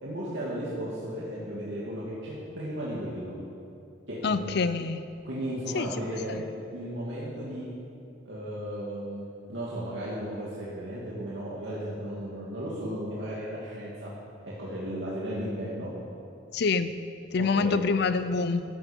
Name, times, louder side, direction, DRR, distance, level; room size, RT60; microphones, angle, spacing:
voice 1, 0.0-3.4 4.1-4.6 5.2-7.7 8.2-14.1 14.4-15.9 17.4-17.9, equal, 75° right, -7 dB, 2.5 m, -35 dB
voice 2, 4.2-5.1 5.7-5.9 6.3-6.4 16.5-17.0 17.3-18.6, left 4 dB, 60° left, 12 dB, 0.5 m, -26 dB
14.5 x 13.5 x 5.3 m, 2.5 s
head